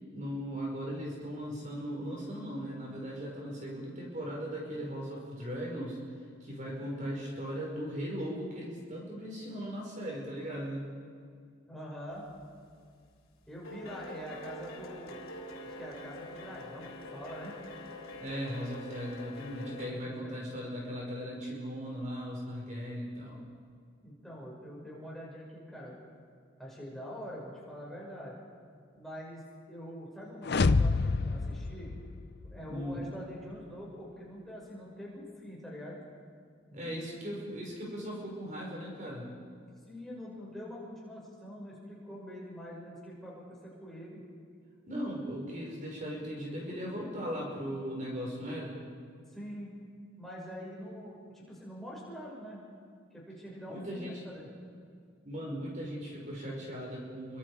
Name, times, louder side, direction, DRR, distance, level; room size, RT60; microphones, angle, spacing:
voice 1, 0.1-6.0 6.4-10.9 18.2-23.5 32.6-33.0 36.7-39.3 44.9-48.8 53.7-54.2 55.2-57.4, equal, 35° right, -2 dB, 5.4 m, -38 dB
voice 2, 11.7-12.3 13.5-15.2 15.6-17.6 19.6-20.4 24.0-26.0 26.6-28.4 29.0-29.4 29.7-31.9 32.5-36.0 36.7-37.4 39.6-44.2 49.3-49.7 50.2-52.6 53.1-54.5, equal, ahead, -5 dB, 6.1 m, -45 dB
sound 1, 12.3-12.7 13.0-19.9, left 1 dB, 90° left, 3.5 m, -45 dB
sound 2, 30.4-32.6, left 3 dB, 50° left, 0.5 m, -28 dB
29.0 x 25.0 x 5.0 m, 2.1 s
head